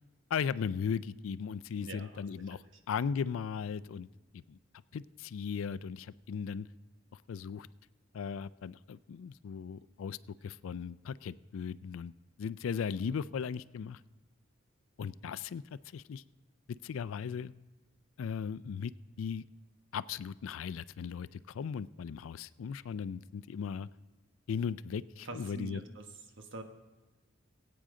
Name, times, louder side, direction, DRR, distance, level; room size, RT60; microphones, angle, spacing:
voice 1, 0.3-4.1 4.3-4.6 4.9-6.7 7.3-7.7 8.1-12.1 12.4-14.0 15.0-16.2 16.8-17.5 18.2-18.9 19.2-19.4 19.9-23.9 24.5-25.8, left 6 dB, 75° left, 17 dB, 0.4 m, -37 dB
voice 2, 1.8-2.6 25.2-26.0 26.4-26.6, right 2 dB, 65° right, 5 dB, 1.3 m, -45 dB
21.5 x 8.7 x 3.7 m, 1.2 s
head